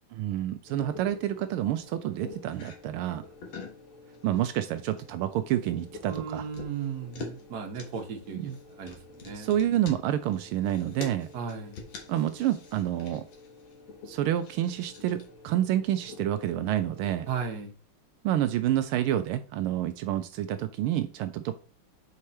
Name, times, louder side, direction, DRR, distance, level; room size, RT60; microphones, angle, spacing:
voice 1, 0.1-3.2 4.2-6.5 8.3-8.6 9.3-11.3 12.1-13.2 14.1-17.3 18.2-21.5, right 12 dB, 85° right, 9 dB, 1.5 m, -28 dB
sound 1, 0.6-17.6, left 3 dB, 90° left, 2.8 m, -50 dB
sound 2, 2.5-2.8 3.2-3.8 4.1-4.5 4.7-5.1 5.5-7.4 7.8-13.7 14.4-15.3, left 4 dB, 65° left, 2.2 m, -45 dB
voice 2, 6.1-9.8 11.3-11.8 17.3-17.7, right 6 dB, 50° right, 3 dB, 1.8 m, -36 dB
5.7 x 4.8 x 4.2 m, 0.39 s
omnidirectional pair, 2.3 m